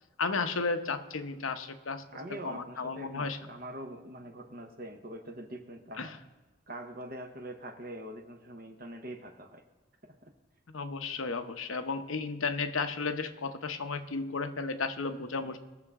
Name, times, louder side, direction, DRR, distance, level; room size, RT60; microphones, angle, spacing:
voice 1, 0.2-2.0 2.4-3.4 6.0-6.1 10.7-15.6, left 4 dB, 90° left, 8 dB, 0.9 m, -33 dB
voice 2, 2.1-6.1 6.7-9.6 10.0-10.3 15.4-15.6, right 1 dB, 45° right, 3 dB, 1.0 m, -44 dB
20.0 x 6.9 x 3.6 m, 1.2 s
head